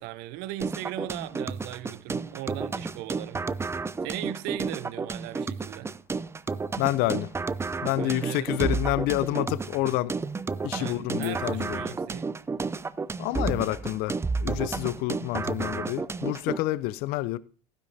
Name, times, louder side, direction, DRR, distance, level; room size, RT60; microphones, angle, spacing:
voice 1, 0.0-3.5 4.0-5.9 8.0-8.7 10.7-12.4, right 15 dB, 55° right, 0.8 m, -38 dB
sound 1, 0.6-16.6, right 4 dB, 15° right, 0.5 m, -32 dB
voice 2, 6.8-7.3 7.8-10.1 10.6-12.0 13.2-17.4, left 16 dB, 55° left, 0.6 m, -28 dB
15.5 x 9.9 x 2.8 m
hypercardioid pair, 75°, 19 cm